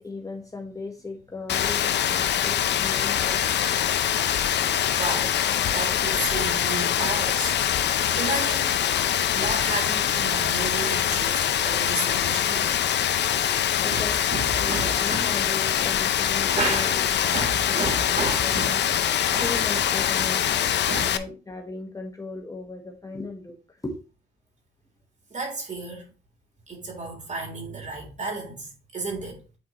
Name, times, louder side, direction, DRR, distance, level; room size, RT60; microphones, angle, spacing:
voice 1, 0.0-3.7 13.8-14.2 14.6-18.8 19.4-24.0, left 3 dB, 15° left, 1.2 m, -37 dB
Rain, 1.5-21.2, left 10 dB, 60° left, 0.7 m, -24 dB
voice 2, 5.0-5.4 5.7-8.8 9.3-12.7 13.5-13.6 13.9-15.2 16.5-17.0 17.3-18.8 19.3-19.8 20.2-20.3 20.9-21.3 25.3-26.1 26.7-29.4, right 2 dB, 40° right, 3.6 m, -32 dB
8.7 x 4.5 x 3.0 m
cardioid pair, 90°, 20 cm